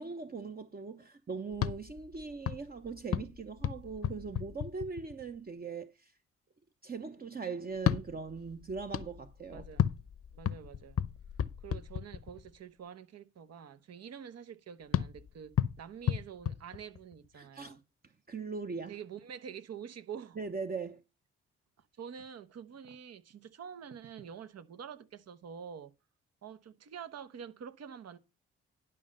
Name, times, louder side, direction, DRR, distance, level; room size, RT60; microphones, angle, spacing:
voice 1, 0.0-6.1 6.8-9.7 17.4-17.8 18.3-19.0 20.4-21.0, right 4 dB, 30° right, 1.0 m, -40 dB
sound 1, 1.5-5.4 7.7-12.6 14.9-17.3, left 9 dB, 45° left, 0.8 m, -35 dB
voice 2, 9.5-10.0 10.3-11.0 11.6-17.8 18.9-20.4 22.0-25.9 26.4-28.2, right 8 dB, 55° right, 1.1 m, -47 dB
11.0 x 5.4 x 5.4 m
hypercardioid pair, 45°, 31 cm